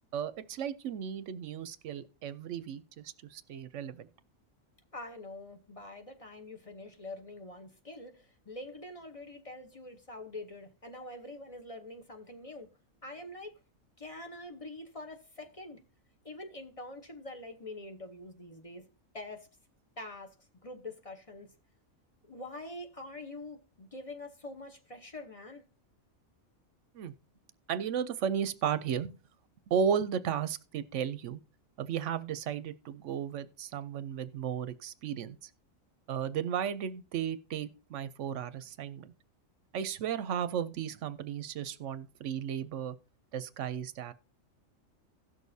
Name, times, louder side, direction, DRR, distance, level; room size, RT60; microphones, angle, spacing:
voice 1, 0.1-4.1 26.9-27.1 27.7-29.2 29.7-31.4 31.8-35.5 36.1-39.1 39.7-42.9 43.3-44.1, right 8 dB, 70° right, 0.9 m, -34 dB
voice 2, 4.9-12.7 13.0-13.5 14.0-15.8 16.2-18.9 19.1-19.5 20.0-20.3 20.6-21.5 22.2-25.6, left 2 dB, 30° left, 0.9 m, -45 dB
16.5 x 6.4 x 2.7 m
omnidirectional pair, 1.4 m